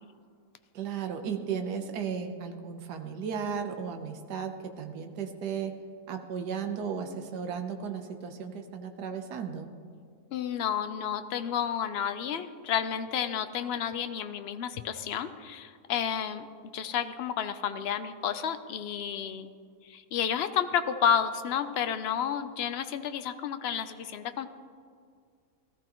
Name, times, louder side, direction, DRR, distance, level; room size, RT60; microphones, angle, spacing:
voice 1, 0.7-5.7 6.1-9.7, right 7 dB, 80° right, 5 dB, 1.5 m, -35 dB
voice 2, 10.3-16.5 16.7-19.5 19.8-24.5, left 8 dB, 70° left, 10 dB, 0.6 m, -31 dB
19.0 x 13.5 x 3.0 m, 2.2 s
omnidirectional pair, 1.7 m